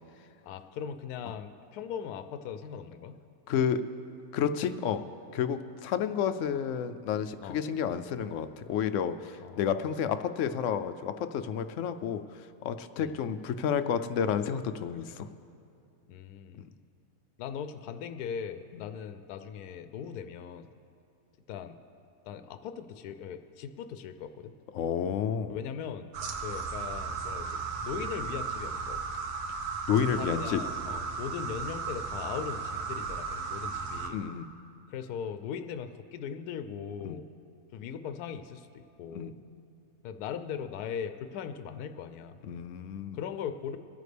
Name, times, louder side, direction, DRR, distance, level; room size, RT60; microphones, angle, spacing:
voice 1, 0.4-3.2 7.4-7.6 9.4-9.8 13.0-13.1 16.1-16.6 17.4-20.7 21.5-21.8 22.3-24.6 25.5-26.1 26.4-29.0 30.1-34.2 34.9-37.3 37.7-39.3 40.0-42.4 43.1-43.8, left 7 dB, 85° left, 10 dB, 1.1 m, -39 dB
voice 2, 3.5-3.8 4.3-5.0 5.3-15.3 16.6-16.7 18.7-18.8 24.7-25.6 29.9-30.6 34.1-34.5 37.0-37.2 39.1-39.3 42.4-43.2, left 8 dB, 65° left, 11 dB, 0.8 m, -30 dB
sound 1, 26.1-34.1, right 5 dB, 85° right, 1.4 m, -35 dB
23.0 x 9.2 x 3.4 m, 2.5 s
omnidirectional pair, 1.6 m